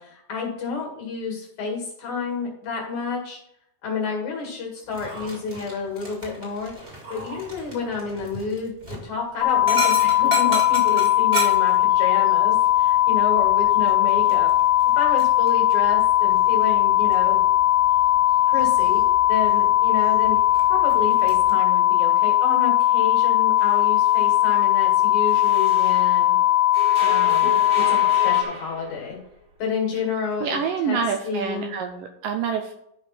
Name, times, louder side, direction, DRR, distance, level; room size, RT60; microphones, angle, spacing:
voice 1, 0.0-3.4 3.8-6.7 7.1-14.5 14.9-17.4 18.5-26.4 27.0-29.2 29.6-30.6 30.8-31.0 31.3-31.7, left 5 dB, 55° left, 0 dB, 2.9 m, -30 dB
Dog, 4.9-21.5, right 1 dB, 20° right, 1.7 m, -36 dB
sound 1, 9.4-28.4, left 13 dB, 85° left, 1.8 m, -19 dB
sound 2, 23.6-26.4 26.7-29.2, right 1 dB, 35° right, 1.8 m, -36 dB
voice 2, 30.4-32.7, right 6 dB, 80° right, 4 dB, 2.1 m, -27 dB
11.5 x 5.2 x 4.2 m, 0.75 s
omnidirectional pair, 4.5 m